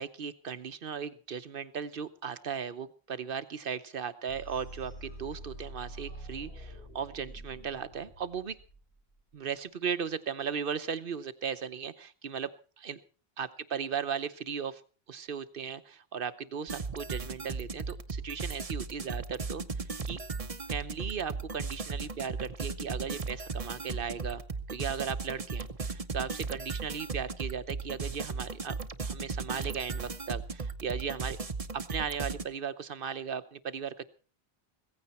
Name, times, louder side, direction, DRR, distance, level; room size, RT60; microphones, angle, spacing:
voice 1, 0.0-8.6 9.3-13.0 13.4-14.8 15.1-20.2 20.7-24.4 24.7-28.7 29.0-31.4 31.9-34.0, right 7 dB, 60° right, 12 dB, 1.0 m, -37 dB
sound 1, 4.3-9.2, right 1 dB, 75° left, 6.4 m, -46 dB
sound 2, 16.7-32.5, right 4 dB, 35° right, 0.9 m, -37 dB
16.0 x 15.5 x 4.3 m, 0.38 s
omnidirectional pair, 1.1 m